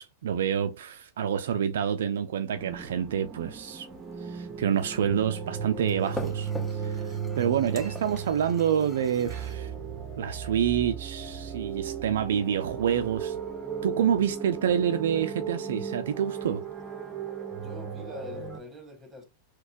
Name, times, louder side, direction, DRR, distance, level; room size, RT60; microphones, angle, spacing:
voice 1, 0.0-3.9 4.2-9.7 10.2-13.4 13.8-16.6, right 8 dB, 65° right, 0.3 m, -28 dB
sound 1, 2.6-18.6, right 7 dB, 25° right, 0.6 m, -36 dB
sound 2, 3.8-9.6, left 2 dB, 10° left, 0.7 m, -44 dB
voice 2, 17.6-19.2, left 2 dB, 10° right, 1.4 m, -44 dB
4.0 x 2.2 x 2.6 m
figure-of-eight pair, 95°, 0 cm